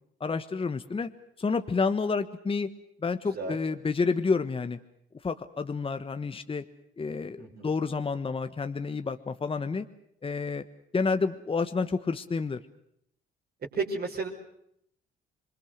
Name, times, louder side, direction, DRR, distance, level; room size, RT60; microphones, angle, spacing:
voice 1, 0.2-1.1 1.4-2.7 3.0-4.8 5.2-6.6 7.0-9.8 10.2-10.6 10.9-12.6, left 4 dB, 25° left, 9 dB, 1.3 m, -29 dB
voice 2, 7.4-7.7 13.7-14.3, right 4 dB, 50° right, -2 dB, 5.2 m, -32 dB
27.5 x 22.5 x 6.6 m, 0.73 s
cardioid pair, 90°, 20 cm